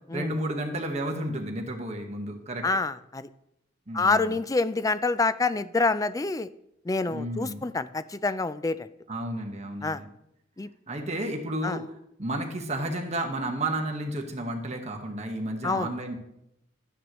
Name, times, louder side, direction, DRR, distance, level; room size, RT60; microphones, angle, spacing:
voice 1, 0.1-2.7 3.9-4.4 7.1-7.7 9.1-10.1 10.9-11.8 12.2-16.2, right 1 dB, 35° right, 3 dB, 1.4 m, -32 dB
voice 2, 2.6-3.3 3.9-6.5 6.9-8.9 9.8-10.0 10.6-10.7 11.6-11.8 15.6-15.9, left 3 dB, 20° left, 14 dB, 0.4 m, -27 dB
13.0 x 9.2 x 3.1 m, 0.82 s
head